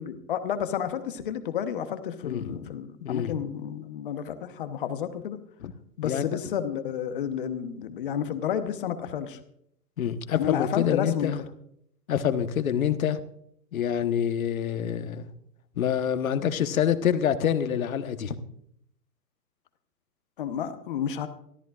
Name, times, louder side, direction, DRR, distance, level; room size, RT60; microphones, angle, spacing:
voice 1, 0.0-5.4 6.0-9.4 10.3-11.4 20.4-21.3, left 9 dB, 30° left, 10 dB, 1.0 m, -31 dB
voice 2, 2.2-2.7 3.0-3.3 5.6-5.7 6.0-6.3 10.0-11.4 12.1-13.2 13.7-15.3 15.8-18.4, left 9 dB, 55° left, 10 dB, 1.2 m, -26 dB
25.5 x 13.5 x 2.4 m, 0.72 s
hypercardioid pair, 160°, 49 cm